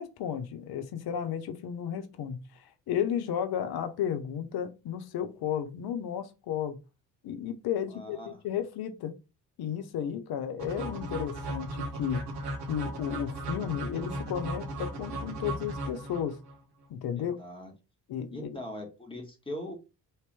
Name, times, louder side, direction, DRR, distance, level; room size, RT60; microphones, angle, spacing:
voice 1, 0.0-6.8 7.2-9.1 9.6-12.3 12.7-16.4 16.9-17.3 18.1-18.5, left 9 dB, 50° left, 0.8 m, -33 dB
voice 2, 7.9-8.4 17.2-17.7 18.3-19.7, left 1 dB, 10° left, 1.5 m, -41 dB
sound 1, 10.6-16.5, right 1 dB, 55° right, 1.2 m, -36 dB
3.2 x 2.9 x 3.3 m
hypercardioid pair, 50°, 49 cm